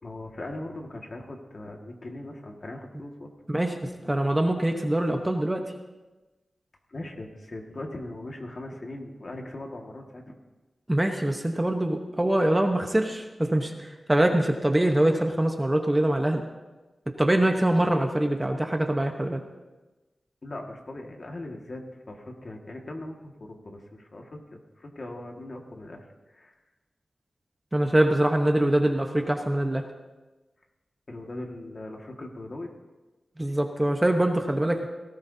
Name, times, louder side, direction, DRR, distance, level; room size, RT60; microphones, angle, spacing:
voice 1, 0.0-3.3 4.0-4.1 6.9-10.4 20.4-26.5 31.1-32.7, left 1 dB, 40° left, 1 dB, 1.8 m, -40 dB
voice 2, 4.0-5.7 10.9-16.5 17.1-19.4 27.7-29.8 33.4-34.9, right 1 dB, 15° right, 4 dB, 1.0 m, -24 dB
18.5 x 17.0 x 2.8 m, 1.1 s
wide cardioid pair, 130°, 0 cm